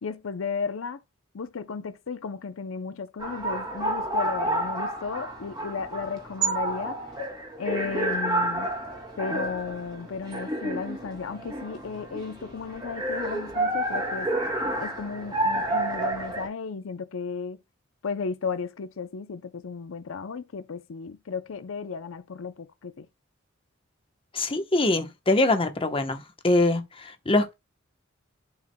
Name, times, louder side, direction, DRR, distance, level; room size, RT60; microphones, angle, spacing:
voice 1, 0.0-1.0 1.3-7.1 7.6-8.7 9.2-14.3 14.8-17.6 18.0-23.1, left 5 dB, 80° left, 0.5 m, -34 dB
sound 1, 3.2-16.5, right 1 dB, 20° right, 2.3 m, -30 dB
voice 2, 24.3-26.2 26.4-27.5, left 2 dB, 30° left, 0.9 m, -23 dB
11.0 x 4.8 x 2.2 m
head